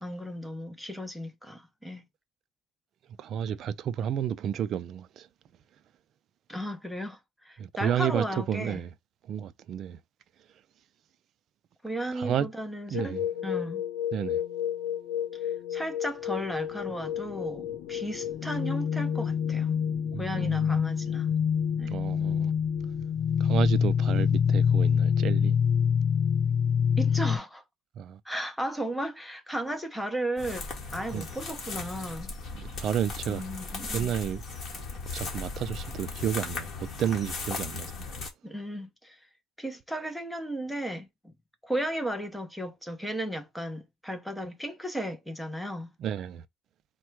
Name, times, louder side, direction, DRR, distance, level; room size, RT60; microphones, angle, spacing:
voice 1, 0.0-2.0 6.5-8.8 11.8-13.2 13.4-13.8 15.4-19.7 20.2-21.3 21.8-21.9 27.0-27.6 28.2-30.6 30.9-32.3 33.3-34.1 38.4-39.2 39.6-41.3 41.6-45.9, right 1 dB, ahead, 0.7 m, -35 dB
voice 2, 3.2-5.3 7.6-8.9 9.3-10.0 12.1-12.5 12.9-13.3 14.1-14.4 20.1-20.7 21.9-22.5 23.4-25.6 28.0-28.2 31.1-31.2 32.5-33.4 33.9-34.4 35.1-37.9 46.0-46.4, right 9 dB, 45° right, 0.4 m, -31 dB
sound 1, 12.9-27.4, left 7 dB, 80° left, 0.8 m, -27 dB
sound 2, 30.4-38.3, left 4 dB, 35° left, 1.5 m, -37 dB
4.2 x 2.2 x 4.5 m
cardioid pair, 140°, 0 cm